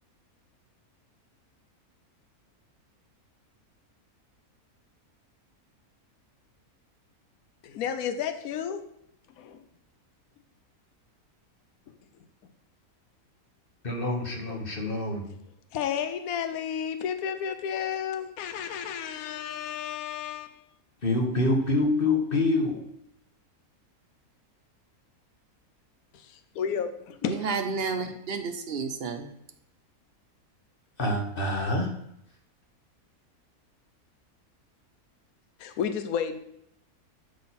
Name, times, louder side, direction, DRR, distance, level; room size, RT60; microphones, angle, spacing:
voice 1, 7.6-8.8 9.4-9.6 15.7-20.6 26.1-27.4 35.6-36.4, left 8 dB, 75° left, 9 dB, 1.1 m, -32 dB
voice 2, 13.8-15.2 21.0-22.8 31.0-31.9, left 2 dB, 40° left, 2 dB, 1.5 m, -26 dB
voice 3, 27.2-29.3, right 5 dB, 50° right, 7 dB, 0.9 m, -31 dB
11.0 x 3.8 x 4.3 m, 0.78 s
omnidirectional pair, 1.5 m